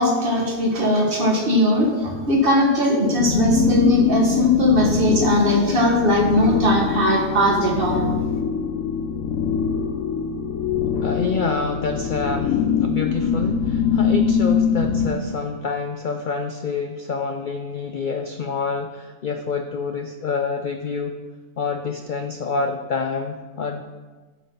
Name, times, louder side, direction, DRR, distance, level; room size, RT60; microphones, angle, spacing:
voice 1, 0.0-8.0, left 1 dB, 40° right, -1 dB, 1.7 m, -19 dB
sound 1, 3.1-15.1, left 7 dB, 85° left, 1.2 m, -23 dB
voice 2, 11.0-21.1 21.6-23.8, left 4 dB, 60° left, 6 dB, 0.5 m, -27 dB
8.4 x 6.2 x 5.4 m, 1.3 s
omnidirectional pair, 1.5 m